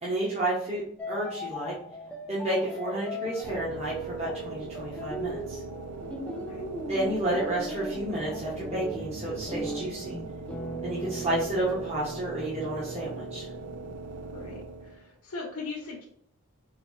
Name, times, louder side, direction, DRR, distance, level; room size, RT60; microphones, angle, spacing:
voice 1, 0.0-1.7 2.3-5.6 6.7-10.2 10.8-13.5, right 1 dB, 30° right, -6 dB, 0.9 m, -31 dB
sound 1, 1.0-13.9, equal, 5° left, 0.4 m, -38 dB
sound 2, 3.4-15.1, right 3 dB, 85° right, 0.4 m, -41 dB
voice 2, 6.3-6.6 14.2-16.0, left 3 dB, 75° left, -5 dB, 0.8 m, -40 dB
4.0 x 3.1 x 3.0 m, 0.66 s
head